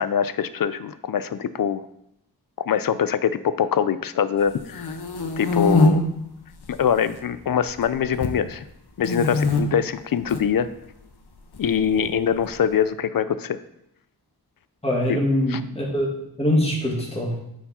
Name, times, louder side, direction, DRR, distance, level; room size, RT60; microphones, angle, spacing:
voice 1, 0.0-1.9 2.7-5.0 5.4-6.0 6.7-8.6 9.0-10.7 11.6-13.6 15.1-15.2 15.5-15.6, left 8 dB, 60° left, 14 dB, 0.5 m, -23 dB
sound 1, 4.5-5.9 6.5-7.2 7.4-8.4 9.0-9.6 10.2-10.4 11.5-12.5, left 4 dB, 75° left, 1.0 m, -25 dB
voice 2, 14.8-16.1 16.4-17.3, left 1 dB, 15° left, -2 dB, 2.0 m, -22 dB
9.0 x 4.7 x 4.3 m, 0.81 s
wide cardioid pair, 100°, 39 cm